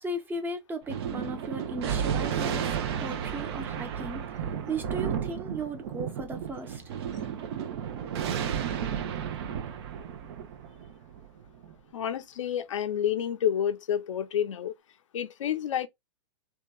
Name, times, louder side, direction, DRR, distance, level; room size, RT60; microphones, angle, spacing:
voice 1, 0.0-2.7 3.0-6.8, right 2 dB, 10° right, 0.7 m, -36 dB
Thunder, 0.9-11.7, right 8 dB, 55° right, 0.6 m, -33 dB
voice 2, 11.9-14.7 15.1-15.9, left 9 dB, 80° left, 0.6 m, -29 dB
2.8 x 2.3 x 2.3 m
hypercardioid pair, 125°, 16 cm